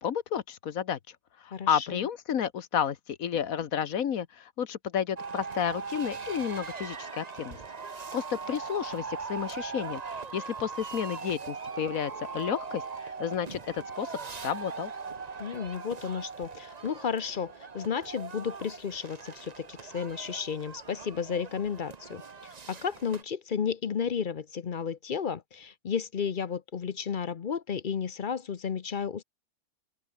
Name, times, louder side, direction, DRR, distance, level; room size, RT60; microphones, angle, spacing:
voice 1, 0.0-1.0 1.4-7.6 7.9-10.0 10.3-14.1 14.4-14.9, left 8 dB, 60° left, 1.4 m, -31 dB
voice 2, 1.5-2.1 15.4-22.2 22.7-29.2, left 7 dB, 45° left, 0.7 m, -33 dB
sound 1, 5.2-23.2, right 5 dB, 30° right, 0.9 m, -40 dB
open air
omnidirectional pair, 1.7 m